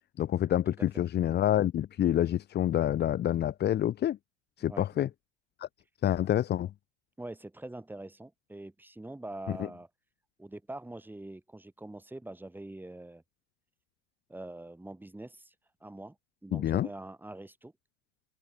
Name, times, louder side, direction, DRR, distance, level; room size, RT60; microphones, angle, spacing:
voice 1, 0.2-4.2 4.6-5.1 5.6-5.7 6.0-6.7 16.5-16.9, left 11 dB, 30° left, 1.6 m, -27 dB
voice 2, 4.6-5.1 7.2-9.9 10.4-13.2 14.3-15.5 15.8-16.2 16.4-17.7, right 1 dB, 5° right, 6.5 m, -44 dB
figure-of-eight pair, 90°, 34 cm